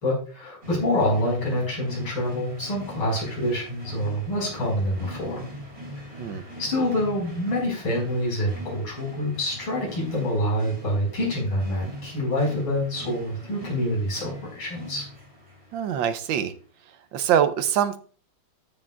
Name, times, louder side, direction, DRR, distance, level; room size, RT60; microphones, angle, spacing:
voice 1, 0.0-5.4 6.0-15.1, left 1 dB, 80° left, -3 dB, 5.5 m, -26 dB
sound 1, 0.6-16.4, equal, 30° right, 3.8 m, -42 dB
voice 2, 15.7-16.5 17.1-18.0, right 9 dB, 70° right, 11 dB, 1.4 m, -23 dB
13.0 x 7.5 x 2.4 m, 0.41 s
omnidirectional pair, 2.2 m